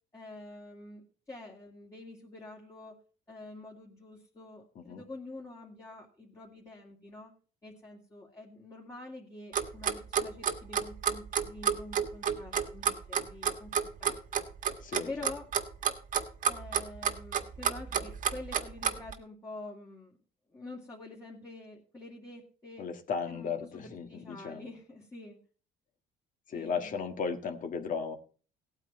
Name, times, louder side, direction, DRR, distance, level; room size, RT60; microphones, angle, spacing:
voice 1, 0.1-3.0 3.3-7.3 7.6-13.7 14.0-14.4 15.1-15.5 16.4-20.2 20.5-22.9 23.3-25.4 26.5-27.0, left 2 dB, 20° left, -3 dB, 2.5 m, -47 dB
Clock, 9.5-19.1, right 7 dB, 50° right, 1.6 m, -29 dB
voice 2, 14.8-15.1 22.8-24.7 26.5-28.2, left 5 dB, 50° left, 5 dB, 1.9 m, -35 dB
17.0 x 8.9 x 4.4 m, 0.39 s
cardioid pair, 110°, 17 cm